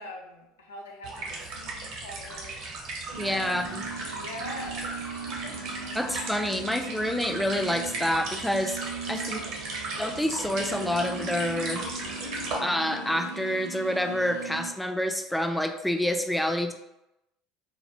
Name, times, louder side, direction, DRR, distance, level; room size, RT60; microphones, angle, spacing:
voice 1, 0.0-2.7 3.2-5.9 9.1-9.6, left 1 dB, 85° left, -1 dB, 0.4 m, -44 dB
sound 1, 1.0-12.6, right 2 dB, 60° right, 0.7 m, -37 dB
sound 2, 3.1-14.7, right 5 dB, 85° right, 0.3 m, -39 dB
voice 2, 3.2-3.8 5.9-8.8 9.1-9.4 10.0-11.9 12.6-16.7, left 1 dB, 5° left, 5 dB, 0.3 m, -28 dB
sound 3, 11.0-13.4, left 7 dB, 40° left, 0.6 m, -45 dB
2.1 x 2.0 x 3.0 m, 0.89 s
hypercardioid pair, 70°, 0 cm